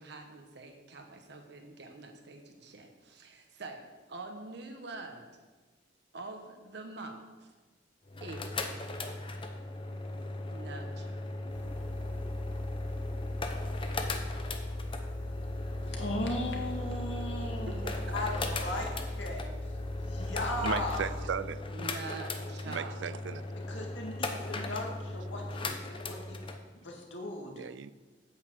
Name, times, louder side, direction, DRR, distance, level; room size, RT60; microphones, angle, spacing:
voice 1, 0.0-3.8 4.1-5.4 6.1-7.5 8.2-8.8 10.5-11.2 17.7-18.2 20.2-20.4 21.7-23.0, right 3 dB, 65° right, 1.1 m, -45 dB
sound 1, 8.1-26.6, left 2 dB, 30° left, 0.8 m, -38 dB
sound 2, 11.5-21.2, left 1 dB, 10° left, 2.3 m, -39 dB
voice 2, 15.8-21.0 23.7-25.7 26.0-26.4 26.7-27.5, left 1 dB, 80° left, 2.3 m, -37 dB
voice 3, 20.6-21.6 22.6-23.4 27.5-27.9, right 6 dB, 80° right, 0.4 m, -36 dB
8.7 x 6.4 x 7.8 m
head